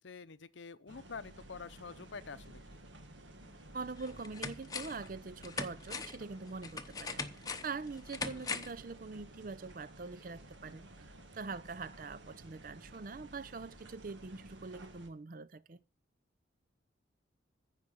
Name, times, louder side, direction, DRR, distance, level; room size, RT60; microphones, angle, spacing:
voice 1, 0.0-2.8 8.3-8.5, left 5 dB, 75° left, 0.7 m, -47 dB
sound 1, 0.9-15.1, right 1 dB, 75° right, 1.6 m, -54 dB
sound 2, 3.4-3.5 4.0-5.1 5.4-8.8 9.2-9.3, left 4 dB, 20° left, 0.8 m, -41 dB
voice 2, 3.7-10.9 11.3-15.8, right 4 dB, 45° right, 0.5 m, -44 dB
15.0 x 5.0 x 8.3 m
head